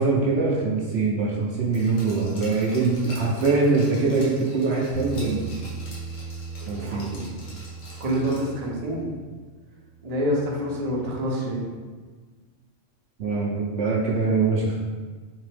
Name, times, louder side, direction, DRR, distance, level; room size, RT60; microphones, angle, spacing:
voice 1, 0.0-5.4 6.7-7.1 13.2-14.8, right 3 dB, 65° right, -3 dB, 0.8 m, -23 dB
Glass, 1.7-8.7 9.0-9.1, left 1 dB, 85° left, 1.4 m, -45 dB
Bass guitar, 4.9-11.2, right 5 dB, 85° right, 1.0 m, -39 dB
voice 2, 6.8-7.2 8.0-9.1 10.0-11.7, equal, 40° right, -3 dB, 0.7 m, -27 dB
3.6 x 3.3 x 3.3 m, 1.4 s
omnidirectional pair, 1.3 m